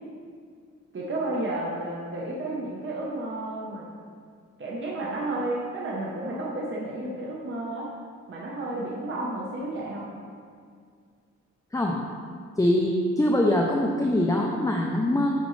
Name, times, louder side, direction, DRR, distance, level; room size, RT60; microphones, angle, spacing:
voice 1, 0.9-3.9 4.6-7.9 8.3-10.1, right 2 dB, 40° right, -4 dB, 1.0 m, -32 dB
voice 2, 12.6-15.3, left 1 dB, 10° left, 0 dB, 0.5 m, -23 dB
10.0 x 5.2 x 3.2 m, 2.1 s
wide cardioid pair, 120°, 30 cm